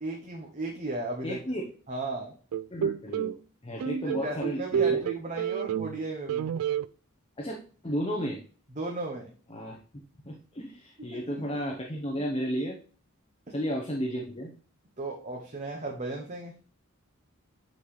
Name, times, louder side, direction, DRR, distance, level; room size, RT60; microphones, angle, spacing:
voice 1, 0.0-1.4 1.9-2.3 3.7-3.8 4.0-6.5 8.8-9.3 11.1-11.4 13.5-13.6 15.0-16.5, right 2 dB, 35° right, 0 dB, 0.8 m, -35 dB
voice 2, 1.2-1.6 2.7-3.4 3.6-5.0 7.4-7.6 7.8-8.4 9.5-9.8 10.2-12.8 13.5-14.5, equal, 25° left, 1 dB, 0.8 m, -33 dB
sound 1, 2.5-3.4 3.8-6.0 6.3-6.9, right 8 dB, 90° right, 0.3 m, -29 dB
8.4 x 4.0 x 3.2 m, 0.41 s
head